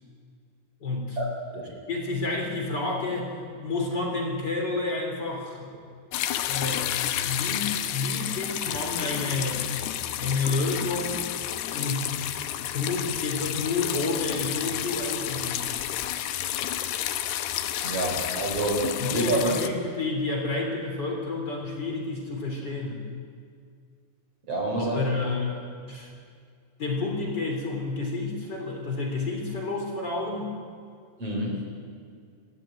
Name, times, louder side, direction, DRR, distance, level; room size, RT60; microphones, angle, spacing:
voice 1, 0.8-1.2 1.9-5.7 6.5-9.6 10.2-11.2 11.6-12.3 12.6-15.7 19.0-23.0 24.7-26.1 26.8-30.5, left 3 dB, 25° left, 1 dB, 3.2 m, -30 dB
sound 1, 6.1-19.7, left 11 dB, 75° left, 2.4 m, -30 dB
voice 2, 17.8-19.5 24.5-25.0 31.2-31.6, right 2 dB, 30° right, -1 dB, 4.8 m, -27 dB
28.5 x 13.5 x 9.0 m, 2.2 s
omnidirectional pair, 5.8 m